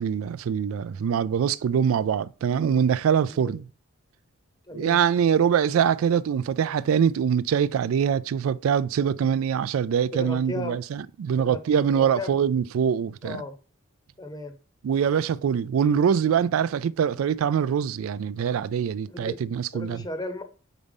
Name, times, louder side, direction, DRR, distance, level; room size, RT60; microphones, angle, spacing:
voice 1, 0.0-3.6 4.7-13.4 14.8-20.0, right 7 dB, 80° right, 0.3 m, -24 dB
voice 2, 4.7-5.0 10.1-10.8 11.4-11.6 11.9-12.3 13.2-13.6 14.2-14.6 19.1-19.4 19.7-20.4, left 1 dB, 20° left, 0.7 m, -35 dB
5.0 x 4.1 x 5.3 m
head